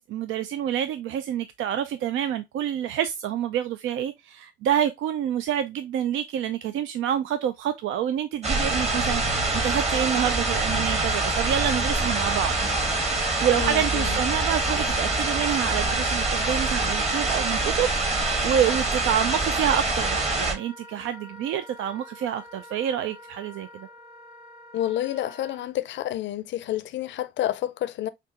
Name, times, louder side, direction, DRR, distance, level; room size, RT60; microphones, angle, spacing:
voice 1, 0.0-12.5 13.4-23.9, right 10 dB, 80° right, 0.4 m, -27 dB
sound 1, 8.4-20.5, right 2 dB, 30° right, 1.4 m, -25 dB
Wind instrument woodwind instrument, 9.1-25.7, equal, 55° right, 2.3 m, -43 dB
voice 2, 13.5-14.2 24.7-28.1, left 12 dB, 65° left, 0.5 m, -29 dB
5.8 x 2.3 x 2.8 m
cardioid pair, 90°, 20 cm